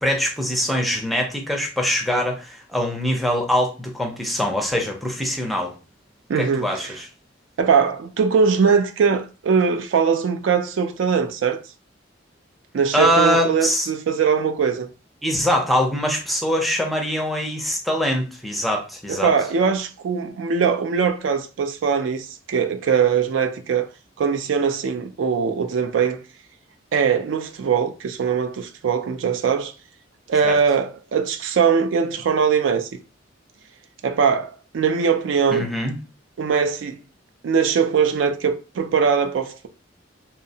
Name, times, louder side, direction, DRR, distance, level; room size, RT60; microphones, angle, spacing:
voice 1, 0.0-5.8 6.4-7.1 12.9-13.9 15.2-19.3 30.4-30.6 35.5-35.9, equal, ahead, 0.4 m, -23 dB
voice 2, 6.3-6.9 7.6-11.6 12.7-14.9 19.1-23.9 24.2-26.2 26.9-29.7 30.3-32.9 34.0-35.7 36.4-37.0 37.4-39.7, right 6 dB, 75° right, 0.4 m, -21 dB
2.7 x 2.0 x 2.7 m
head